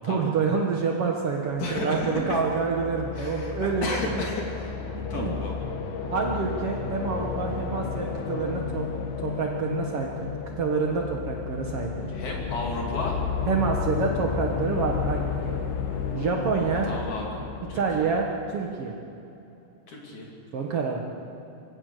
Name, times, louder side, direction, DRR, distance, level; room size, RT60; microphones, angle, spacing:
voice 1, 0.0-4.1 4.9-5.4 6.1-8.9 9.2-10.1 10.6-11.9 13.5-15.6 16.1-16.9 17.7-18.9 20.5-21.0, right 5 dB, 85° right, 0 dB, 1.2 m, -27 dB
sound 1, 1.4-18.4, left 6 dB, 75° left, 3.5 m, -32 dB
voice 2, 1.6-2.4 3.1-4.8 5.1-5.6 12.1-13.2 16.8-18.1 19.9-20.3, left 2 dB, 50° left, -1 dB, 4.1 m, -33 dB
24.5 x 16.0 x 6.7 m, 2.8 s
omnidirectional pair, 4.8 m